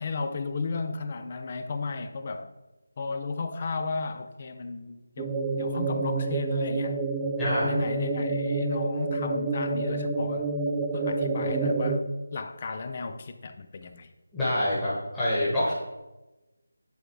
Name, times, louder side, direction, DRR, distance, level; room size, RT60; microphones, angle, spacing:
voice 1, 0.0-2.5 3.0-7.0 7.6-10.5 10.9-12.0 12.3-14.1, left 4 dB, 35° left, 9 dB, 0.5 m, -34 dB
sound 1, 5.2-12.0, right 3 dB, 15° right, 0.5 m, -28 dB
voice 2, 7.4-7.7 14.3-15.7, left 1 dB, 10° left, -12 dB, 1.5 m, -26 dB
10.0 x 3.8 x 4.7 m, 1.1 s
figure-of-eight pair, 165°, 0 cm